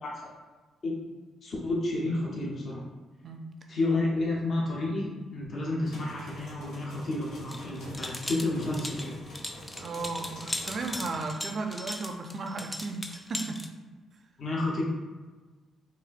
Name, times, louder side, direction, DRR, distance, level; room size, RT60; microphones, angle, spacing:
voice 1, 1.4-2.8 3.7-9.2 14.4-14.8, left 2 dB, 50° left, -4 dB, 0.7 m, -30 dB
sound 1, 5.8-11.2, left 1 dB, 85° left, 1.1 m, -46 dB
sound 2, 7.5-13.7, left 1 dB, 15° left, 0.3 m, -38 dB
voice 2, 9.8-13.7, right 3 dB, 50° right, 4 dB, 0.4 m, -35 dB
4.1 x 2.5 x 2.5 m, 1.3 s
cardioid pair, 90°, 0 cm